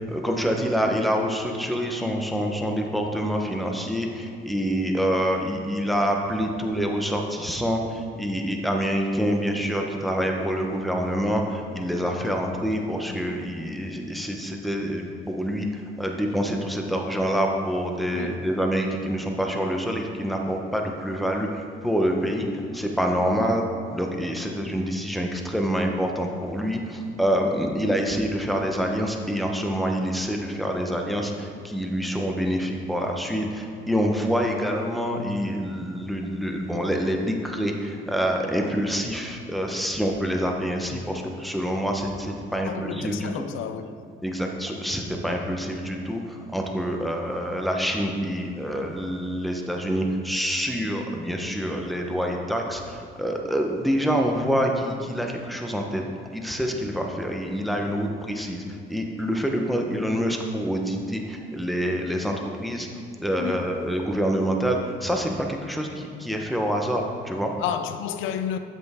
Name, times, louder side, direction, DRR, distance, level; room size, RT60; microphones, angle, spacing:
voice 1, 0.1-22.5 22.7-23.6 23.9-43.3 44.2-56.0 56.3-58.6 58.9-62.9 63.2-67.5, equal, ahead, 1.0 m, -26 dB
voice 2, 18.1-18.5 23.3-23.6 42.6-44.0 63.4-63.7 67.6-68.6, left 9 dB, 90° left, 0.4 m, -31 dB
7.9 x 7.6 x 3.7 m
cardioid pair, 90°, 20 cm